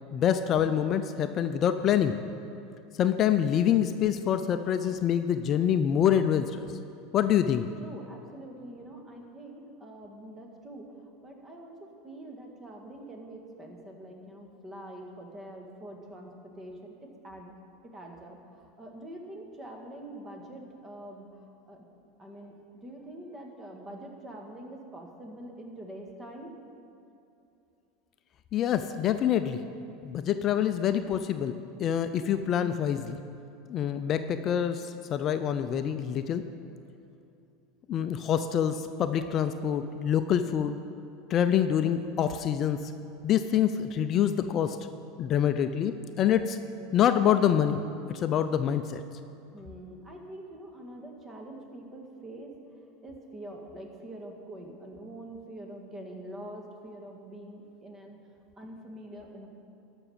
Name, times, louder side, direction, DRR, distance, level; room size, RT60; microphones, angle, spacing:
voice 1, 0.1-2.2 3.0-6.7 7.1-7.7 28.5-29.6 30.0-33.2 33.7-36.4 37.9-40.8 41.3-42.9 43.2-44.9 45.2-46.6 46.9-49.0, left 9 dB, 40° left, 10 dB, 0.4 m, -26 dB
voice 2, 7.8-17.6 17.8-21.8 22.2-26.6 49.5-52.6 53.0-58.2 58.6-59.5, right 1 dB, 25° right, 2 dB, 1.7 m, -45 dB
13.0 x 6.1 x 5.6 m, 2.8 s
hypercardioid pair, 105°, 0 cm